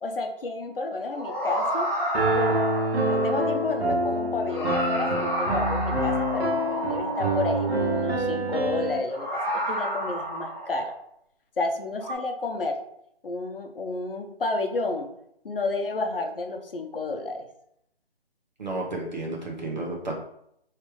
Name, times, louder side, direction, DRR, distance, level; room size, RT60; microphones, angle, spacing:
voice 1, 0.0-1.9 2.3-2.6 3.0-10.9 11.6-12.8 13.2-15.1 15.4-17.5, left 3 dB, 60° left, 5 dB, 0.8 m, -31 dB
sound 1, 1.0-3.7 4.4-8.1 9.1-10.9 12.0-12.1, equal, 20° left, 1.1 m, -31 dB
Piano, 2.1-9.0, right 1 dB, 85° right, 1.1 m, -26 dB
voice 2, 18.6-20.1, right 2 dB, 45° right, -1 dB, 1.1 m, -32 dB
5.1 x 3.3 x 3.1 m, 0.74 s
hypercardioid pair, 175°, 31 cm